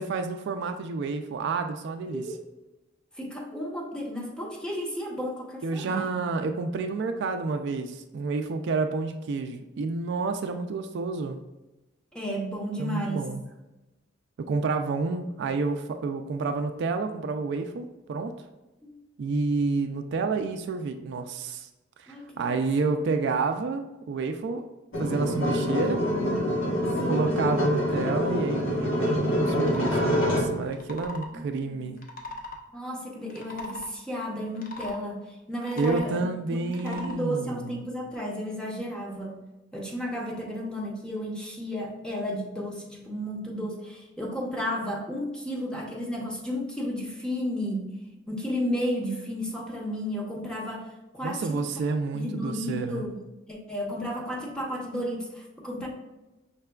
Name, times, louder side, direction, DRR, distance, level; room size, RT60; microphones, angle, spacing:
voice 1, 0.0-2.2 5.6-11.4 12.8-13.4 14.4-18.4 19.2-21.7 22.0-24.6 25.0-26.0 27.1-32.0 35.8-37.8 51.2-53.0, right 4 dB, 60° right, 7 dB, 0.3 m, -29 dB
voice 2, 3.1-6.1 12.1-13.3 18.8-19.0 22.1-22.7 27.0-27.3 31.3-31.9 32.7-39.4 39.7-47.9 48.3-51.6 52.1-53.2 53.5-55.9, equal, 5° left, -2 dB, 0.7 m, -33 dB
sound 1, 24.9-30.6, equal, 85° left, 1.2 m, -26 dB
sound 2, 29.6-30.0 30.7-31.3 32.0-32.6 33.2-33.9 34.6-35.0 35.5-36.1 36.7-37.2, left 1 dB, 45° left, 0.6 m, -39 dB
5.6 x 3.3 x 2.2 m, 1.0 s
head